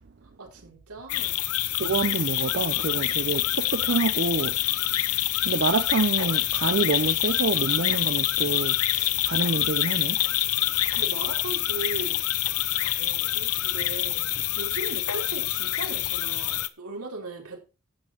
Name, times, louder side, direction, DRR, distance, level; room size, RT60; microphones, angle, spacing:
voice 1, 0.2-1.5 10.7-12.2 12.8-17.6, right 2 dB, 85° right, 4.2 m, -38 dB
sound 1, 1.1-16.7, left 14 dB, 90° left, 0.8 m, -26 dB
voice 2, 1.8-4.5 5.4-10.2, right 4 dB, 50° right, 0.6 m, -27 dB
11.5 x 8.6 x 4.4 m
head